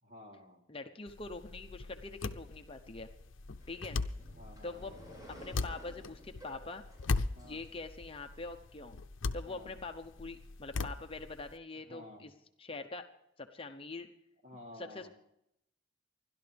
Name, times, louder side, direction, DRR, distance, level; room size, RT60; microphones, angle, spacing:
voice 1, 0.0-0.6 4.3-5.0 7.3-7.6 9.4-9.7 11.9-12.3 14.4-15.1, left 1 dB, 40° right, 0 dB, 3.3 m, -52 dB
voice 2, 0.7-3.1 3.7-4.0 4.6-6.8 7.4-9.0 9.3-12.3 12.6-13.1 13.4-14.1 14.8-15.1, left 3 dB, 30° left, 5 dB, 0.8 m, -44 dB
sound 1, 1.1-11.6, left 3 dB, 90° left, 0.7 m, -39 dB
sound 2, 3.6-8.3, equal, 20° right, 5.9 m, -54 dB
28.0 x 12.0 x 3.5 m, 0.78 s
head